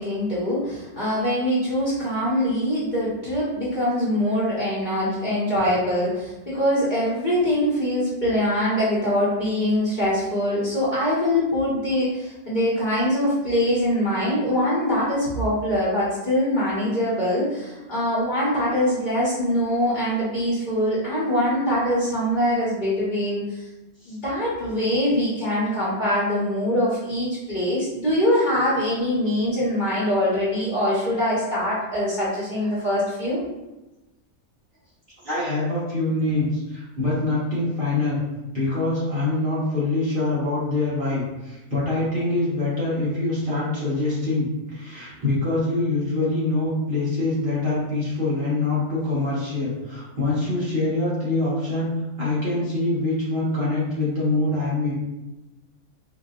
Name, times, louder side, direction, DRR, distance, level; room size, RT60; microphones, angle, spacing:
voice 1, 0.0-23.6 24.1-33.4, equal, 35° left, -9 dB, 1.2 m, -23 dB
voice 2, 35.2-38.2 38.5-51.9 52.2-54.9, left 2 dB, 40° right, -9 dB, 1.1 m, -24 dB
4.8 x 2.6 x 2.4 m, 1.0 s
omnidirectional pair, 1.5 m